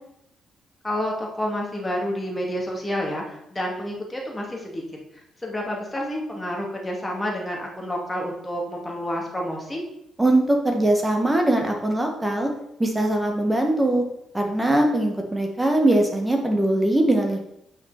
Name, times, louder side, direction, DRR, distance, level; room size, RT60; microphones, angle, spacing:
voice 1, 0.8-4.8 5.4-9.8, equal, 15° left, -1 dB, 2.5 m, -29 dB
voice 2, 10.2-12.5 12.8-14.0 14.3-17.4, right 1 dB, 15° right, 3 dB, 1.9 m, -21 dB
8.8 x 5.8 x 4.3 m, 0.78 s
cardioid pair, 90°, 0 cm